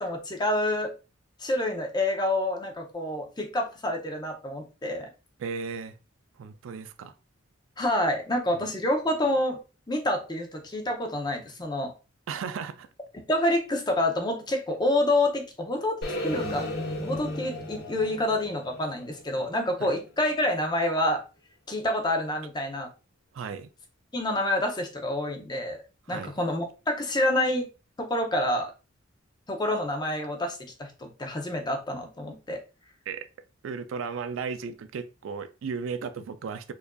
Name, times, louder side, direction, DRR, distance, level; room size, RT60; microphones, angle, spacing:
voice 1, 0.0-0.9 1.4-5.1 7.8-9.6 9.9-11.9 13.3-16.7 17.0-21.2 21.7-22.9 24.1-25.8 26.1-27.7 28.0-28.7 29.5-32.6, left 1 dB, 20° left, 0.6 m, -28 dB
voice 2, 5.4-6.0 6.4-7.1 12.3-12.9 19.8-19.9 23.3-23.7 26.1-26.3 33.1-33.3 33.6-36.7, right 5 dB, 70° right, 0.3 m, -35 dB
sound 1, 16.0-20.1, left 1 dB, 55° left, 0.9 m, -35 dB
4.6 x 2.5 x 2.2 m
head